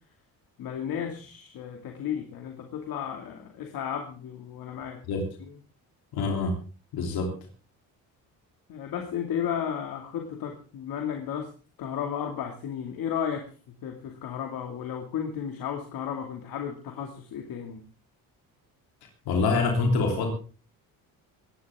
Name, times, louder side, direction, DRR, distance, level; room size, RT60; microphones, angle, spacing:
voice 1, 0.6-5.0 5.4-5.5 8.7-11.5 11.8-13.5 13.8-17.8, left 8 dB, 65° left, 3 dB, 2.5 m, -33 dB
voice 2, 6.1-6.6 6.9-7.4 19.3-20.3, left 3 dB, 85° left, 2 dB, 3.5 m, -25 dB
19.0 x 15.5 x 3.7 m, 0.37 s
cardioid pair, 145°, 36 cm